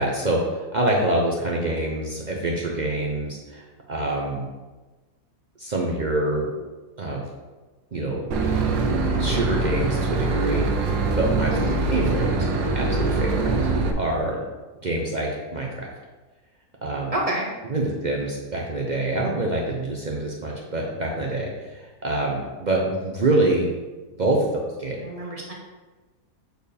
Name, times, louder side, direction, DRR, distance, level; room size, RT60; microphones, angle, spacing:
voice 1, 0.0-4.5 5.6-6.5 7.0-7.3 7.9-8.3 9.2-11.5 11.9-13.6 14.0-14.4 14.8-15.9 16.8-17.1 17.7-23.7 24.2-25.0, right 2 dB, 55° right, -2 dB, 0.5 m, -26 dB
Boat Water vehicle / Engine, 8.3-13.9, right 3 dB, 85° right, 1.3 m, -23 dB
voice 2, 17.1-17.5 25.0-25.5, right 1 dB, 25° right, -3 dB, 1.0 m, -28 dB
7.9 x 4.4 x 3.3 m, 1.2 s
omnidirectional pair, 1.8 m